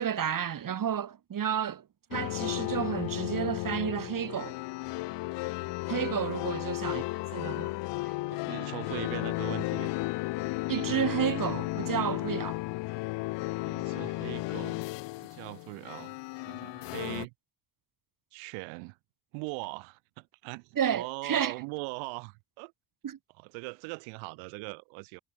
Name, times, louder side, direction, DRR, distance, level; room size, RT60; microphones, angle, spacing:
voice 1, 0.0-1.8 2.1-4.6 5.9-7.0 7.3-7.7 8.0-8.1 10.7-12.6 20.8-21.5 23.0-23.2, right 9 dB, 45° right, 2.3 m, -31 dB
sound 1, 2.1-17.3, left 21 dB, 60° left, 0.8 m, -34 dB
voice 2, 8.3-9.9 13.6-14.8 15.3-16.2 16.4-17.3 18.3-19.0 19.3-22.7 23.4-25.2, right 35 dB, 75° right, 1.8 m, -40 dB
hypercardioid pair, 60°, 47 cm